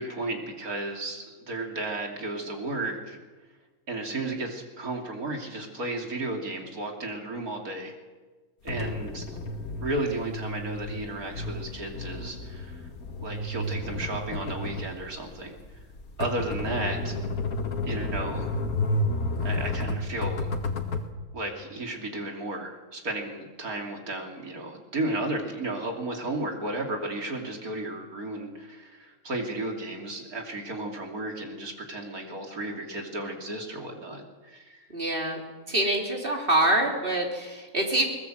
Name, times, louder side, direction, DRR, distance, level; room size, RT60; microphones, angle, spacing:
voice 1, 0.0-3.2 3.9-7.9 8.6-9.3 9.8-12.9 13.2-15.6 16.2-17.2 17.9-18.5 19.4-20.6 21.3-34.9, right 2 dB, 80° right, 2 dB, 3.4 m, -33 dB
sound 1, 8.7-21.1, left 2 dB, 85° left, 2.2 m, -31 dB
voice 2, 34.9-35.4 35.7-38.1, right 1 dB, 40° right, 1 dB, 3.6 m, -25 dB
21.0 x 20.5 x 8.0 m, 1.3 s
omnidirectional pair, 1.5 m